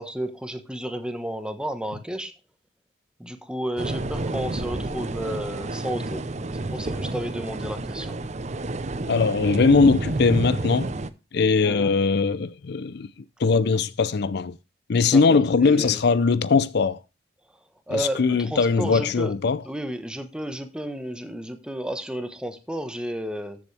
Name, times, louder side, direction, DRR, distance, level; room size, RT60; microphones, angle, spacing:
voice 1, 0.0-2.3 3.2-6.3 6.5-8.2 11.6-11.9 15.0-16.0 17.9-19.3 19.6-23.6, equal, 5° right, 1.2 m, -32 dB
sound 1, 3.8-11.1, right 2 dB, 40° right, 0.7 m, -30 dB
voice 2, 9.1-10.9 11.3-13.1 13.4-14.6 14.9-17.0 17.9-19.6, left 4 dB, 60° left, 0.5 m, -20 dB
13.5 x 7.1 x 3.4 m
head